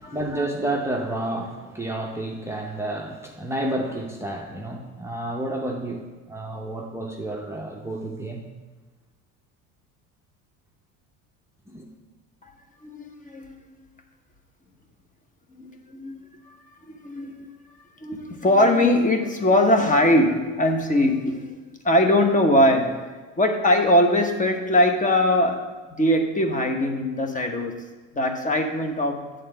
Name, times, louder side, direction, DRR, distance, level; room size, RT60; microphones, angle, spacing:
voice 1, 0.0-8.4 11.7-11.9, right 1 dB, 5° right, 0 dB, 0.7 m, -30 dB
voice 2, 12.8-13.5 15.6-16.1 16.9-17.5 18.0-21.6 21.8-23.0 23.4-25.6 25.9-27.8 28.1-29.3, left 1 dB, 20° left, 4 dB, 0.9 m, -21 dB
8.5 x 3.9 x 6.6 m, 1.3 s
supercardioid pair, 95°, 39 cm